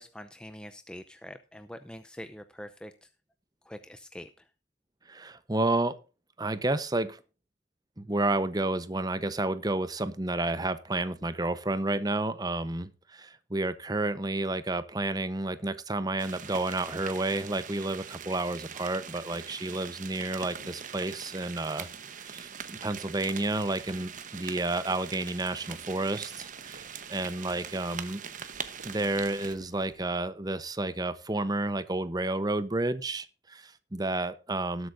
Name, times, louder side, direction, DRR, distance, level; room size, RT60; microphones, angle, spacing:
voice 1, 0.0-3.1 3.6-4.5, equal, 5° left, 8 dB, 0.6 m, -45 dB
voice 2, 5.1-6.0 6.4-7.2 8.0-21.9 22.2-26.8 27.1-28.2 28.8-34.9, right 2 dB, 20° right, 13 dB, 0.9 m, -31 dB
sound 1, 16.2-29.6, right 7 dB, 45° right, 1.1 m, -42 dB
sound 2, 20.5-25.0 25.3-30.0, right 3 dB, 85° right, 3.1 m, -57 dB
19.0 x 8.0 x 2.6 m, 0.33 s
head